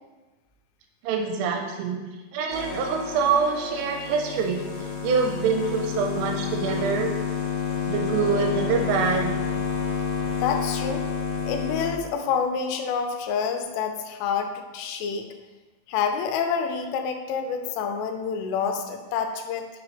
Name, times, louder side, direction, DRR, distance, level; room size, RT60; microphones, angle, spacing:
voice 1, 1.0-2.0 2.3-7.1 7.9-9.4, right 5 dB, 85° right, 3 dB, 3.1 m, -25 dB
sound 1, 2.5-11.9, left 6 dB, 70° left, 2.8 m, -29 dB
voice 2, 9.9-15.3 15.9-19.7, left 6 dB, 85° left, 5 dB, 3.1 m, -28 dB
6.7 x 5.0 x 3.3 m, 1.2 s
omnidirectional pair, 5.6 m